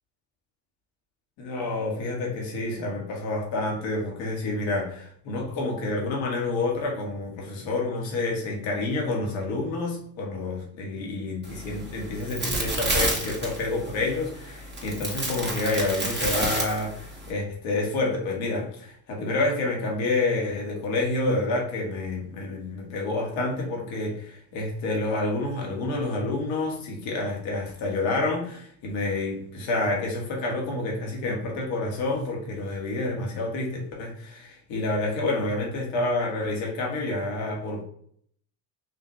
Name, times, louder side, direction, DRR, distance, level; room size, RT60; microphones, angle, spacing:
voice 1, 1.4-37.8, left 2 dB, 65° left, -1 dB, 1.5 m, -28 dB
sound 1, 11.4-17.3, right 2 dB, 20° right, 1.7 m, -30 dB
4.9 x 2.8 x 3.1 m, 0.62 s
hypercardioid pair, 55°, 48 cm